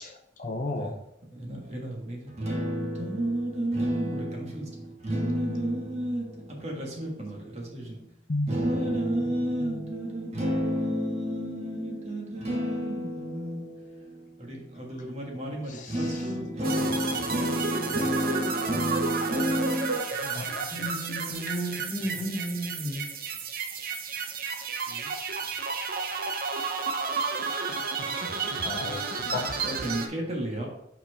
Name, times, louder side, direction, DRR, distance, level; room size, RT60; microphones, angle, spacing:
voice 1, 0.4-0.9 8.3-8.6 9.6-9.7 15.7-16.2 20.3-20.6 28.6-29.6, left 2 dB, 45° left, 4 dB, 0.7 m, -33 dB
voice 2, 1.3-8.0 8.5-20.9 24.9-25.1 29.6-30.7, equal, 40° right, -1 dB, 1.5 m, -31 dB
sound 1, 16.6-30.1, right 4 dB, 55° right, 0.7 m, -32 dB
voice 3, 20.7-23.1, equal, 5° left, -4 dB, 1.6 m, -33 dB
5.6 x 4.4 x 4.7 m, 0.78 s
head